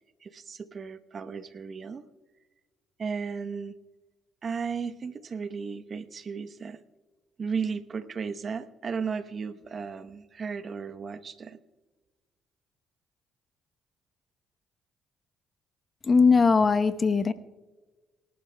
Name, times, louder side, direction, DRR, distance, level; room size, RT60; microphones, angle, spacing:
voice 1, 0.2-2.1 3.0-3.7 4.4-6.8 7.4-11.6, right 5 dB, 50° right, 11 dB, 0.9 m, -35 dB
voice 2, 16.0-17.3, left 4 dB, 40° left, 10 dB, 0.9 m, -20 dB
24.5 x 12.0 x 2.2 m, 1.3 s
hypercardioid pair, 55°, 0 cm